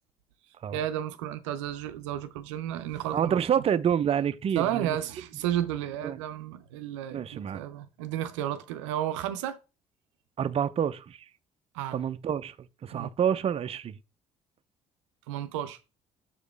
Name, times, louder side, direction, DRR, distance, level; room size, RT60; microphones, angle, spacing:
voice 1, 0.7-3.6 4.6-9.6 11.7-12.0 12.9-13.1 15.3-15.8, right 11 dB, 85° right, 0.6 m, -32 dB
voice 2, 3.1-5.0 6.0-6.2 7.1-7.6 10.4-11.3 11.9-12.6 12.8-14.0, right 8 dB, 40° right, 0.5 m, -28 dB
6.9 x 5.0 x 3.2 m
hypercardioid pair, 60°, 15 cm